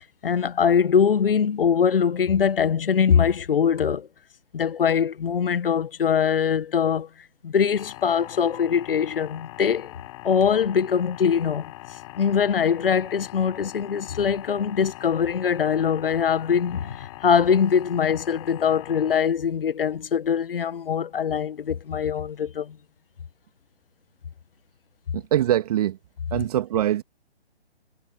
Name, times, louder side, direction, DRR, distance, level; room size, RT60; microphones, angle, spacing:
voice 1, 0.2-4.1 4.5-7.1 7.4-9.9 10.2-11.7 12.1-22.8, left 7 dB, 55° left, 1.5 m, -22 dB
sound 1, 7.7-19.2, left 19 dB, 30° left, 6.2 m, -42 dB
voice 2, 25.1-26.0 26.3-27.0, right 12 dB, 35° right, 2.1 m, -23 dB
figure-of-eight pair, 145°, 33 cm